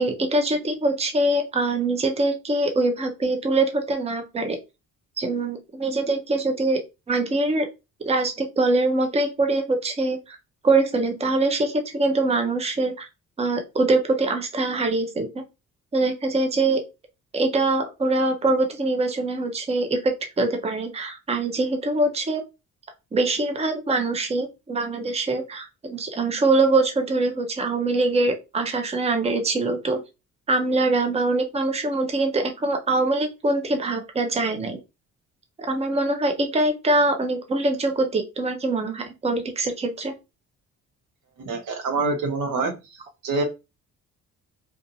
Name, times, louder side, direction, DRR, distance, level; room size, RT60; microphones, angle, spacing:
voice 1, 0.0-4.6 5.2-6.8 7.1-7.7 8.0-10.4 10.6-13.1 13.4-15.4 15.9-16.8 17.3-22.4 23.1-30.0 30.5-34.8 35.7-40.1, right 2 dB, 20° right, 4 dB, 0.6 m, -23 dB
voice 2, 41.4-43.4, right 3 dB, 80° right, 4 dB, 0.8 m, -26 dB
2.6 x 2.4 x 2.6 m, 0.25 s
cardioid pair, 90°, 30 cm